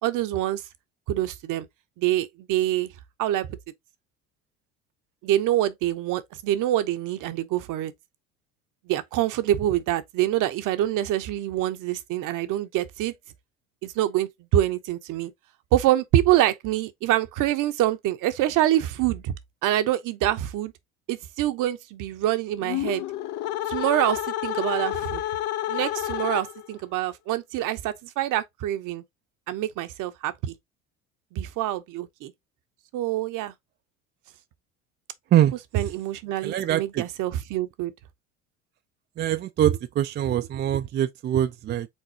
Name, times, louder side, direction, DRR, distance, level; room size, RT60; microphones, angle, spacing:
voice 1, 0.0-0.6 1.1-1.7 2.0-2.9 3.2-3.6 5.2-7.9 8.9-13.1 13.8-15.3 15.7-19.3 19.6-20.7 21.1-23.0 23.7-25.2 25.7-29.0 29.5-30.5 31.3-32.3 32.9-33.5 35.7-37.9, right 13 dB, 55° right, 0.8 m, -25 dB
sound 1, 22.6-26.8, left 13 dB, 50° left, 0.5 m, -30 dB
voice 2, 35.3-35.8 36.4-37.0 39.2-41.9, right 11 dB, 30° right, 0.4 m, -23 dB
4.4 x 3.9 x 2.7 m
hypercardioid pair, 70°, 39 cm